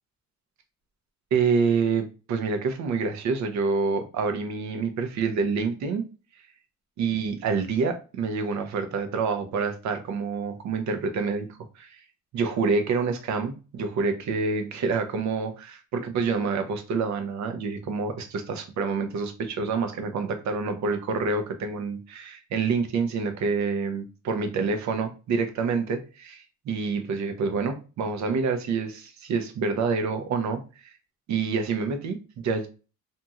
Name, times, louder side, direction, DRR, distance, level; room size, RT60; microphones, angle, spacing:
voice 1, 1.3-6.0 7.0-12.0 12.3-30.6 31.3-32.7, right 4 dB, 70° right, 0.7 m, -27 dB
2.7 x 2.3 x 2.8 m
cardioid pair, 90°, 30 cm